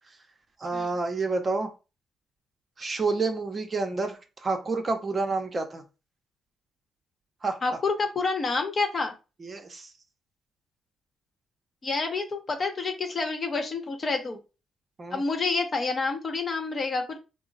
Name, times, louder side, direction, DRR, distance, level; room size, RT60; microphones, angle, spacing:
voice 1, 0.6-1.7 2.8-5.8 7.4-7.6 9.4-9.9 15.0-15.2, right 3 dB, 35° right, 5 dB, 0.7 m, -29 dB
voice 2, 7.6-9.1 11.8-14.4 15.1-17.2, left 4 dB, 35° left, 5 dB, 0.9 m, -28 dB
3.7 x 2.0 x 3.9 m, 0.30 s
cardioid pair, 90°, 0 cm